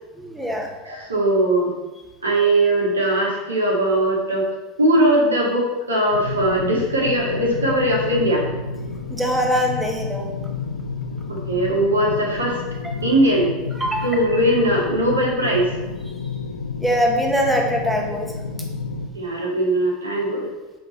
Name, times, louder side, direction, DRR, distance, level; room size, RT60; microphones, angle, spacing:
voice 1, 0.2-0.7 9.1-10.2 13.8-14.0 16.8-18.3, equal, 5° right, 0 dB, 1.7 m, -22 dB
voice 2, 0.8-1.7 2.2-4.5 4.8-8.5 11.3-12.6 13.0-13.5 14.0-15.6 19.1-20.5, right 1 dB, 90° right, -3 dB, 2.2 m, -20 dB
sound 1, 6.1-19.1, left 5 dB, 80° left, 0.5 m, -30 dB
8.1 x 6.2 x 4.1 m, 1.1 s
hypercardioid pair, 80°, 0 cm